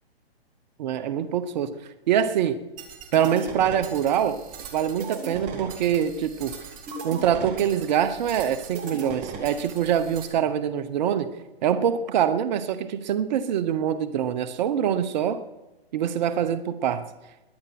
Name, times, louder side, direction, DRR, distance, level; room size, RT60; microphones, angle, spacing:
voice 1, 0.8-1.7 2.1-2.6 3.1-4.4 4.7-6.5 7.0-11.3 11.6-15.4 15.9-17.1, right 9 dB, 45° right, 12 dB, 1.0 m, -24 dB
sound 1, 2.8-10.3, right 4 dB, 25° right, 2.4 m, -38 dB
21.5 x 8.2 x 6.0 m, 1.0 s
hypercardioid pair, 140°, 31 cm